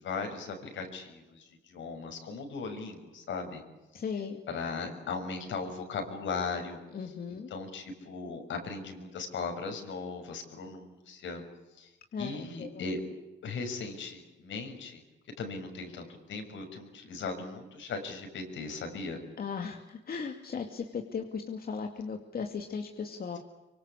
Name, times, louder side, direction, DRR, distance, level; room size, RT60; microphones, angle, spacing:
voice 1, 0.0-3.6 4.5-6.8 7.3-11.4 11.8-11.9 12.2-13.0 13.4-15.0 15.4-19.2, left 4 dB, 70° left, 5 dB, 6.6 m, -38 dB
voice 2, 3.9-4.4 6.9-7.5 12.1-12.9 19.4-23.4, left 5 dB, 50° left, 4 dB, 2.5 m, -37 dB
25.5 x 24.5 x 8.4 m, 1.1 s
cardioid pair, 90°, 20 cm